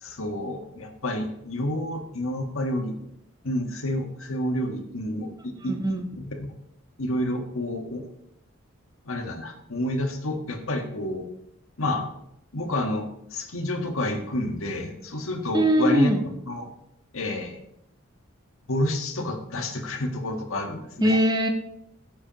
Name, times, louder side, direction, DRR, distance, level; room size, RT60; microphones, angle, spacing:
voice 1, 0.0-3.0 3.4-5.8 6.2-6.5 7.0-8.0 9.0-11.2 11.8-12.0 12.5-16.7 17.1-17.6 18.7-21.2, left 1 dB, 90° left, 4 dB, 1.5 m, -29 dB
voice 2, 5.6-6.1 15.5-16.3 21.0-21.5, equal, 20° right, 4 dB, 1.1 m, -21 dB
15.0 x 8.2 x 3.0 m, 0.80 s
head